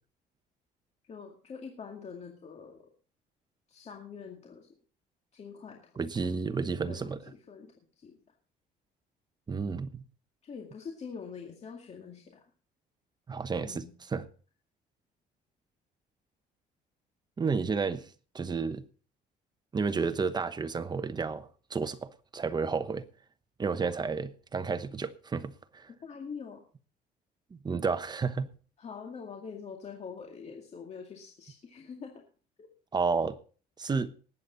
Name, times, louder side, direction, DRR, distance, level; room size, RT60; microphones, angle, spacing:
voice 1, 1.0-2.9 3.7-4.7 5.3-6.3 6.8-8.2 10.4-12.4 13.5-13.9 26.0-26.7 28.8-32.2 32.6-32.7, left 6 dB, 40° left, 2.1 m, -45 dB
voice 2, 6.0-7.2 9.5-10.0 13.3-14.3 17.4-18.1 18.3-18.8 19.7-23.0 23.6-25.9 27.6-28.5 32.9-33.4 33.8-34.1, right 4 dB, 25° right, 1.0 m, -31 dB
19.5 x 8.5 x 4.0 m
cardioid pair, 110°, 17 cm